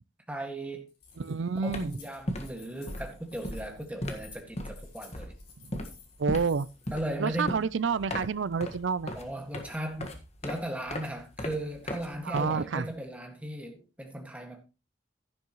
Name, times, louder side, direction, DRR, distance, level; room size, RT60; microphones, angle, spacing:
voice 1, 0.3-0.9 1.6-5.3 6.9-7.6 9.1-10.1 10.4-14.6, right 1 dB, 5° right, 1.8 m, -37 dB
Keys jangling, 0.9-6.9, left 6 dB, 55° left, 5.9 m, -54 dB
sound 1, 1.1-1.3 1.5-13.0, left 1 dB, 35° left, 1.6 m, -38 dB
voice 2, 1.2-1.9 6.2-6.7 7.2-9.1 12.3-12.9, right 5 dB, 80° right, 0.5 m, -29 dB
11.0 x 10.5 x 3.1 m
head